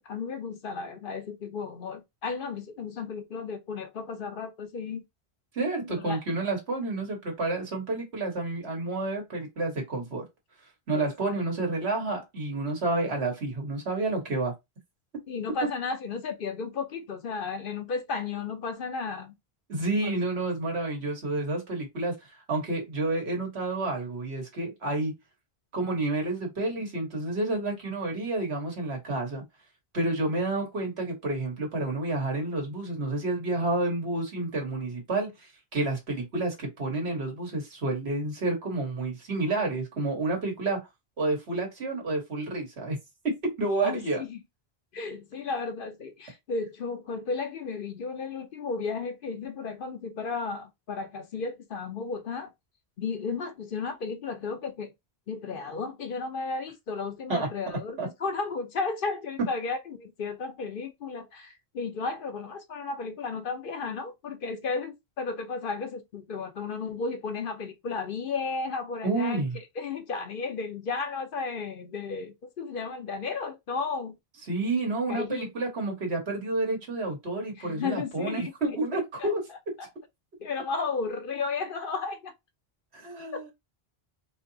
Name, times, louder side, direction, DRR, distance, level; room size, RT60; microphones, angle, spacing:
voice 1, 0.0-5.0 5.9-6.2 10.9-11.3 15.3-19.3 20.0-20.1 43.8-44.4 44.9-52.5 53.0-54.9 55.3-74.1 75.1-75.5 77.6-78.5 78.9-79.3 79.8-79.9 80.4-82.3 83.3-83.5, left 4 dB, 60° left, 0.9 m, -34 dB
voice 2, 5.5-10.3 10.9-14.6 19.7-22.2 22.5-25.1 25.7-29.4 29.9-40.8 41.2-43.0 43.2-44.2 57.3-57.5 58.0-58.1 69.0-69.6 74.5-79.4 82.9-83.5, right 2 dB, 85° right, 1.7 m, -29 dB
4.5 x 2.8 x 2.7 m
omnidirectional pair, 1.1 m